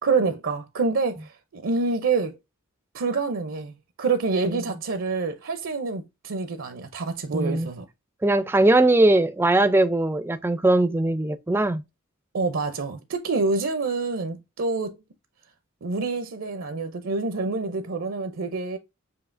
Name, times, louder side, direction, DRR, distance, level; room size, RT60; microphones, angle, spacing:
voice 1, 0.0-2.3 2.9-7.9 12.3-15.0 15.8-18.8, right 4 dB, 65° right, 0.5 m, -27 dB
voice 2, 7.3-7.7 8.2-11.8, right 2 dB, 10° right, 0.3 m, -20 dB
7.0 x 2.8 x 2.5 m
head